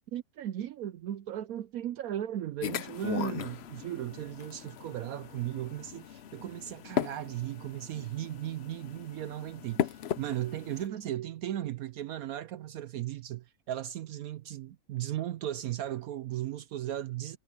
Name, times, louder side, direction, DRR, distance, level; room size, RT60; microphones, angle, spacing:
voice 1, 0.1-17.4, right 12 dB, 70° right, 1.0 m, -36 dB
sound 1, 2.6-10.9, left 9 dB, 55° left, 0.7 m, -37 dB
omnidirectional pair, 1.7 m